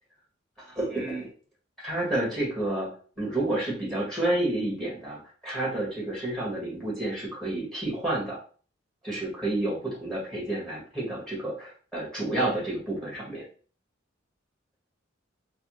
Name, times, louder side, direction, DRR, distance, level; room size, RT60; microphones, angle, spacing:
voice 1, 0.6-1.3 1.8-2.9 3.2-8.4 9.0-13.4, right 1 dB, ahead, -5 dB, 1.8 m, -30 dB
3.3 x 3.3 x 3.2 m, 0.40 s
head